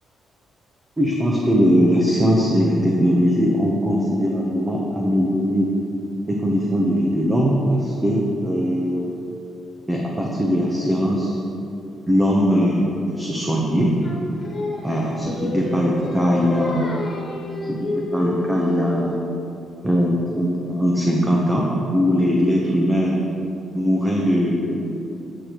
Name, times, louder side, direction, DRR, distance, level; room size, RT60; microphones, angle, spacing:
voice 1, 1.0-5.7 6.3-9.0 9.9-11.4 12.1-13.9 14.8-16.9 17.6-19.2 19.8-23.1 23.7-24.8, equal, 10° right, -2 dB, 0.9 m, -20 dB
Singing, 14.0-19.2, left 2 dB, 30° left, 1.6 m, -30 dB
8.4 x 6.9 x 3.0 m, 2.7 s
cardioid pair, 90°, 0 cm